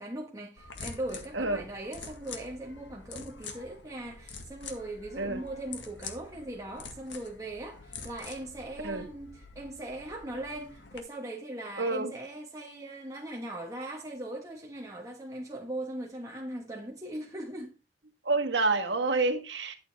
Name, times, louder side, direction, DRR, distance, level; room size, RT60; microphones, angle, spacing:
voice 1, 0.0-17.7, right 1 dB, 20° right, 1.5 m, -39 dB
sound 1, 0.6-11.0, left 5 dB, 75° left, 2.0 m, -46 dB
voice 2, 11.8-12.1 18.2-19.7, right 3 dB, 80° right, 1.6 m, -28 dB
11.5 x 7.9 x 3.4 m
head